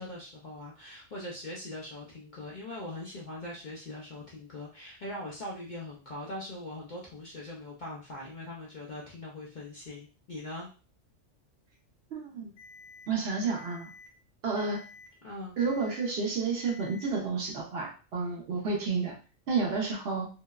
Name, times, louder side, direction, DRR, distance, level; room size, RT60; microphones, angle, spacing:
voice 1, 0.0-10.7 15.2-15.6, left 1 dB, 55° left, -4 dB, 0.5 m, -41 dB
voice 2, 12.1-12.5 13.1-13.9 14.4-14.8 15.6-19.2 19.5-20.3, right 4 dB, 60° right, 0 dB, 0.8 m, -30 dB
Alarm, 12.6-13.1 13.6-14.1 14.6-15.1 15.6-16.1 16.6-17.1, left 4 dB, 85° left, 1.2 m, -51 dB
2.7 x 2.0 x 2.2 m, 0.35 s
omnidirectional pair, 1.3 m